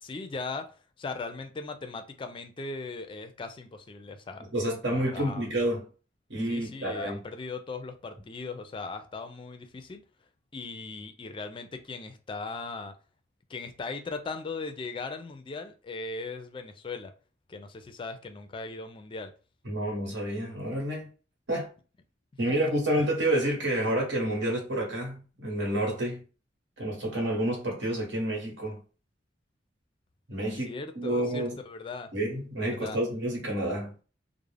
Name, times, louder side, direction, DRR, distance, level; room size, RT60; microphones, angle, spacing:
voice 1, 0.0-4.5 4.8-5.5 6.5-10.0 10.5-12.9 13.5-17.1 17.5-19.3 22.5-22.9 30.7-32.1 32.8-33.0, left 3 dB, 30° left, 0.4 m, -38 dB
voice 2, 4.5-5.8 6.3-7.2 19.6-21.1 21.5-21.7 22.4-26.2 26.8-28.8 30.3-31.6 32.1-34.0, right 1 dB, 75° right, 1.1 m, -29 dB
2.4 x 2.0 x 3.2 m
head